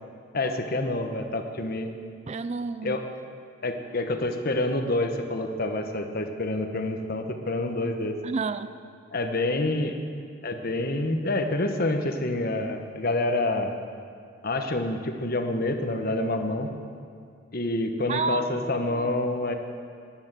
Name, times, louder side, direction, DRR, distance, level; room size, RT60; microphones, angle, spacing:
voice 1, 0.3-1.9 2.8-3.0 3.6-8.1 9.1-9.9 10.4-13.7 14.4-16.7 17.5-19.5, left 2 dB, 50° left, 5 dB, 1.2 m, -27 dB
voice 2, 2.3-3.0 8.2-8.8 18.1-19.2, right 4 dB, 35° right, 13 dB, 0.4 m, -31 dB
14.5 x 10.5 x 7.5 m, 2.3 s
head